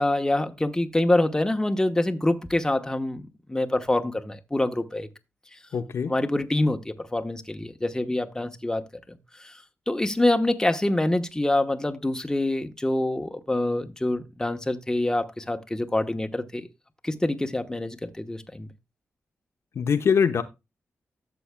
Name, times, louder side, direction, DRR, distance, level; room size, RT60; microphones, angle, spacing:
voice 1, 0.0-5.1 6.1-8.8 9.4-9.5 9.9-16.7 17.0-18.7, left 1 dB, 15° left, 1.0 m, -25 dB
voice 2, 5.7-6.1 19.8-20.4, left 6 dB, 70° left, 0.8 m, -22 dB
13.0 x 6.9 x 2.2 m
cardioid pair, 85°, 5 cm